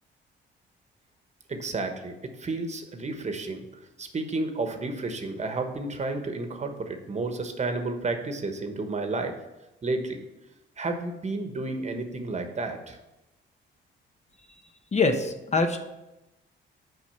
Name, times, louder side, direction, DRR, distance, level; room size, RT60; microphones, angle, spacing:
voice 1, 1.5-3.7 4.0-9.3 9.8-10.2 10.8-13.0, right 3 dB, 35° right, 6 dB, 1.1 m, -31 dB
voice 2, 14.9-15.8, left 3 dB, 35° left, 6 dB, 0.9 m, -24 dB
6.1 x 5.4 x 6.7 m, 0.96 s
cardioid pair, 90°, 20 cm